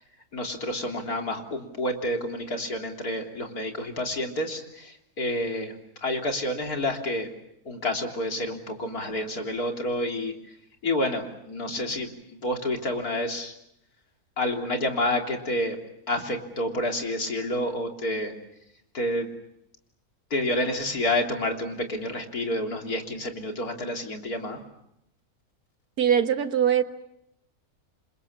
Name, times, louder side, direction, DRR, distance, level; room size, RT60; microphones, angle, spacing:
voice 1, 0.3-5.8 6.0-7.3 7.7-10.3 10.8-13.5 14.4-15.8 16.1-18.3 18.9-19.3 20.3-24.6, left 1 dB, 75° left, 3 dB, 3.9 m, -29 dB
voice 2, 26.0-26.8, right 8 dB, 80° right, 9 dB, 2.0 m, -21 dB
29.0 x 26.0 x 7.3 m, 0.80 s
omnidirectional pair, 1.6 m